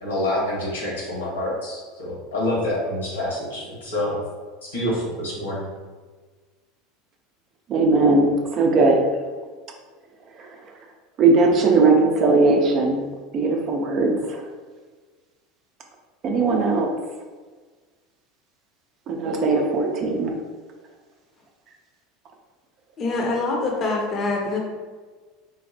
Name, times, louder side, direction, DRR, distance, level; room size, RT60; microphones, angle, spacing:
voice 1, 0.0-4.2 4.6-5.7, left 1 dB, 85° left, -6 dB, 1.2 m, -27 dB
voice 2, 7.7-9.0 10.4-10.5 11.2-13.1 13.3-14.4 16.2-16.9 19.1-20.3, right 3 dB, 45° right, 2 dB, 0.5 m, -19 dB
voice 3, 23.0-24.6, left 3 dB, 35° left, -1 dB, 0.7 m, -24 dB
3.9 x 2.1 x 2.7 m, 1.4 s
hypercardioid pair, 75°, 0 cm